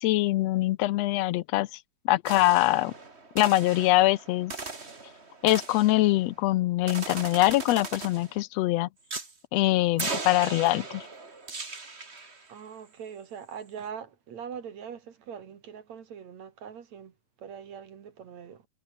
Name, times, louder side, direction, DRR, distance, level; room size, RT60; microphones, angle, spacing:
voice 1, 0.0-1.7 2.0-2.9 3.3-4.5 5.4-8.9 9.5-11.0, left 17 dB, 85° left, 1.4 m, -23 dB
sound 1, 2.3-6.4 6.9-8.4 9.1-9.3 10.0-12.5, right 3 dB, 20° right, 2.4 m, -38 dB
voice 2, 12.5-18.7, right 7 dB, 60° right, 3.1 m, -42 dB
omnidirectional pair, 3.7 m